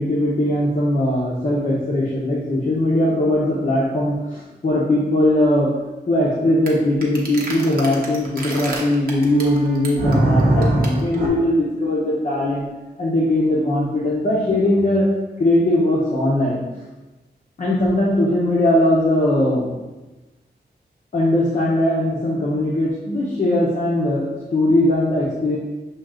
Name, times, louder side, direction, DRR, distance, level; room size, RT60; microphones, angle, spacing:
voice 1, 0.0-5.7 6.1-12.7 13.0-15.1 15.4-16.6 17.6-19.7 21.1-25.6, left 1 dB, 45° left, -6 dB, 0.7 m, -20 dB
sound 1, 6.7-6.8 7.0-11.3, right 1 dB, 55° right, 0.9 m, -21 dB
6.0 x 2.3 x 3.7 m, 1.1 s
wide cardioid pair, 155°, 18 cm